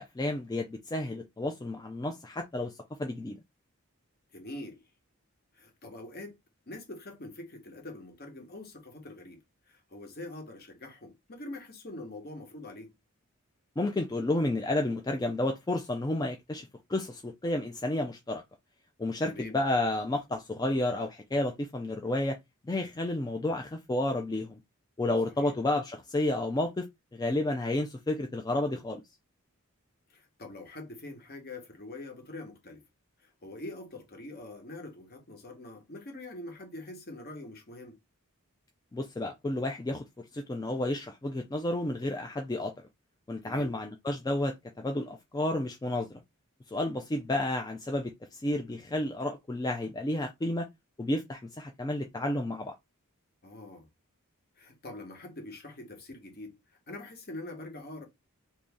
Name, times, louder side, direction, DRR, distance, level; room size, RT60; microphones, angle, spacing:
voice 1, 0.0-3.4 13.8-18.4 19.0-22.4 22.6-24.6 25.0-26.9 27.1-29.0 38.9-42.7 43.3-46.2 46.7-50.7 51.0-52.7, left 1 dB, 15° left, 0.3 m, -31 dB
voice 2, 4.3-4.8 5.5-6.4 6.7-9.4 9.7-12.9 19.3-19.6 25.2-25.6 30.1-32.8 33.2-38.0 43.4-43.7 53.4-53.9 54.6-58.0, left 2 dB, 45° left, 1.1 m, -44 dB
3.0 x 2.7 x 3.5 m
head